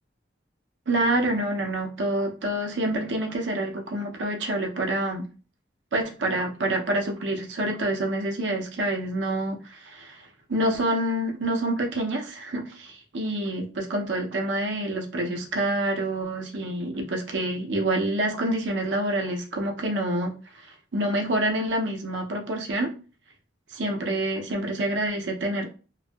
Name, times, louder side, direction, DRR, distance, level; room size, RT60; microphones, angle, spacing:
voice 1, 0.9-5.3 5.9-20.3 20.9-22.9 23.7-25.7, right 1 dB, 75° right, 3 dB, 0.6 m, -27 dB
2.6 x 2.3 x 2.2 m, 0.36 s
head